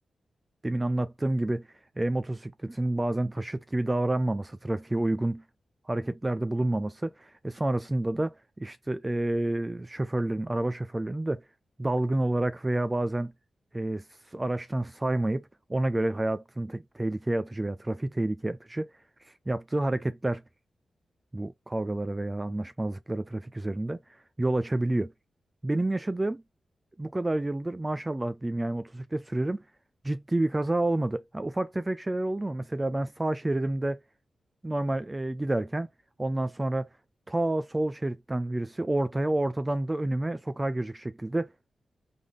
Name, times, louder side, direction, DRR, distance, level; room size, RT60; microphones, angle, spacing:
voice 1, 0.6-1.7 2.0-5.4 5.9-11.4 11.8-13.3 13.7-14.0 14.3-15.4 15.7-18.9 19.2-20.4 21.3-24.0 24.4-25.1 25.6-26.4 27.0-29.6 30.0-34.0 34.6-35.9 36.2-36.9 37.3-41.5, right 1 dB, 20° right, 0.4 m, -29 dB
3.8 x 3.5 x 3.2 m
cardioid pair, 80°, 0 cm